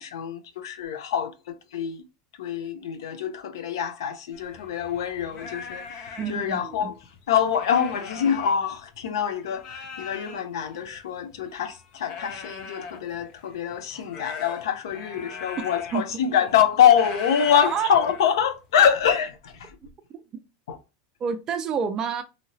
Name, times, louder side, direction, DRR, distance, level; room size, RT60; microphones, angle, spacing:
voice 1, 0.0-1.3 1.7-2.0 2.4-6.9 7.3-19.3 19.6-19.7 20.7-20.8, left 8 dB, 90° left, 0.6 m, -25 dB
sound 1, 4.3-9.1 9.4-18.7, left 5 dB, 45° left, 0.6 m, -41 dB
voice 2, 6.2-6.9 15.9-16.0 17.7-18.1 21.2-22.2, right 6 dB, 30° right, 0.5 m, -28 dB
2.9 x 2.8 x 2.7 m
supercardioid pair, 145°, 2 cm